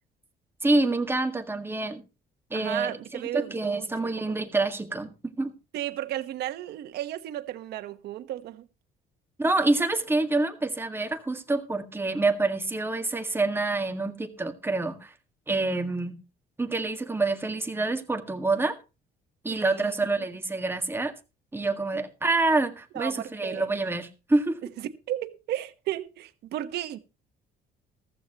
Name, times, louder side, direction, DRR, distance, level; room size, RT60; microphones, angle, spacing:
voice 1, 0.6-2.0 2.5-5.1 5.4-5.5 9.4-15.1 15.5-16.2 16.6-18.8 19.4-21.1 21.5-24.6, right 2 dB, 15° right, 1.8 m, -27 dB
voice 2, 2.5-4.4 5.7-8.7 19.5-19.9 22.9-23.7 25.1-27.0, right 13 dB, 75° right, 1.2 m, -34 dB
14.5 x 14.5 x 3.0 m
cardioid pair, 110°, 17 cm